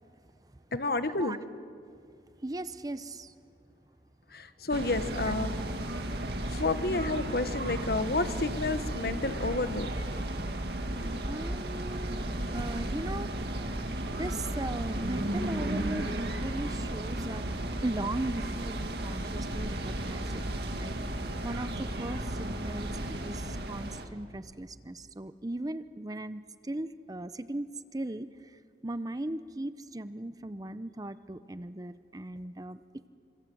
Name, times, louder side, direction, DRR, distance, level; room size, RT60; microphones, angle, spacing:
voice 1, 0.7-1.4 4.3-5.5 6.5-9.9, left 2 dB, 60° left, 11 dB, 1.2 m, -30 dB
voice 2, 2.4-3.3 5.3-5.4 11.2-12.3 12.5-13.3 13.6-13.7 14.2-17.5 17.8-20.4 20.7-33.1, right 1 dB, 20° right, 13 dB, 0.6 m, -38 dB
sound 1, 4.7-24.0, right 1 dB, 65° right, 2.1 m, -34 dB
29.0 x 26.0 x 7.9 m, 2.3 s
head